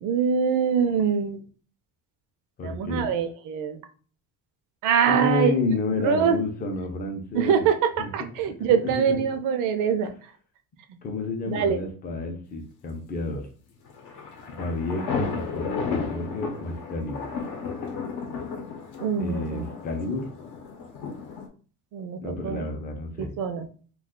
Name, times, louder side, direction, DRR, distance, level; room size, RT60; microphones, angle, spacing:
voice 1, 0.0-1.4 2.6-3.8 4.8-5.5 6.0-6.4 7.3-10.1 11.5-11.8 19.0-19.7 21.9-22.6 23.2-23.7, right 7 dB, 65° right, 8 dB, 0.5 m, -24 dB
voice 2, 2.6-3.2 5.1-7.7 8.0-8.1 8.6-9.2 11.0-13.5 14.5-17.3 19.2-20.3 22.2-23.3, left 2 dB, 25° left, 3 dB, 0.5 m, -30 dB
sound 1, 13.9-21.5, left 5 dB, 65° left, 0.7 m, -34 dB
2.3 x 2.3 x 3.6 m, 0.40 s
cardioid pair, 175°, 34 cm